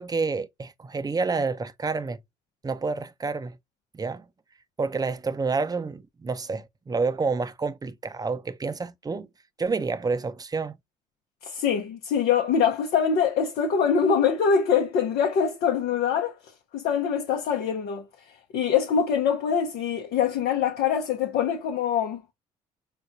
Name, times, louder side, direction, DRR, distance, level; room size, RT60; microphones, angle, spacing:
voice 1, 0.0-2.2 2.6-3.6 3.9-4.3 4.8-9.3 9.6-10.8, right 4 dB, 20° right, 0.6 m, -29 dB
voice 2, 11.4-22.2, left 7 dB, 65° left, 0.8 m, -24 dB
4.9 x 2.2 x 2.6 m
hypercardioid pair, 55°, 17 cm